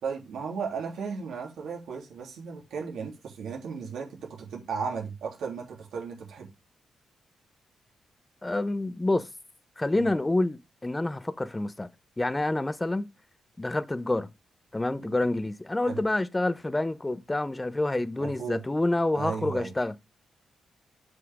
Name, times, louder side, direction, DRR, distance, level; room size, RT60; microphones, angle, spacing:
voice 1, 0.0-6.5 9.9-10.1 15.0-15.2 15.8-16.0 18.2-18.6 19.1-19.7, right 5 dB, 80° right, 3.1 m, -35 dB
voice 2, 8.4-9.3 9.8-11.9 12.2-13.1 13.6-14.3 14.7-19.9, left 2 dB, 15° left, 0.7 m, -28 dB
7.8 x 5.9 x 3.6 m
cardioid pair, 115°, 0 cm